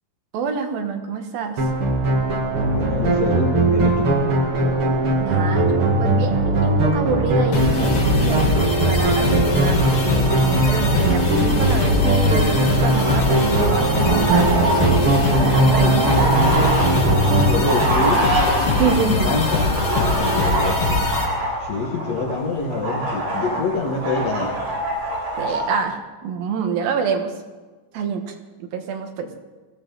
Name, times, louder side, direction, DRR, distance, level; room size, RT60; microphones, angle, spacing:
voice 1, 0.3-1.7 5.2-8.6 8.9-9.8 10.3-16.9 18.8-19.4 25.4-27.3 27.9-29.3, right 6 dB, 75° right, 5 dB, 3.0 m, -26 dB
sound 1, 1.6-17.6, right 2 dB, 45° right, 1.9 m, -19 dB
voice 2, 2.7-4.3 17.2-18.3 18.6-21.1 21.6-24.5, left 3 dB, 55° left, 0 dB, 2.4 m, -26 dB
sound 2, 7.5-21.2, left 3 dB, 85° left, 4.6 m, -22 dB
sound 3, 12.9-25.8, right 1 dB, 90° right, 8.0 m, -25 dB
20.5 x 15.0 x 4.0 m, 1.3 s
omnidirectional pair, 4.3 m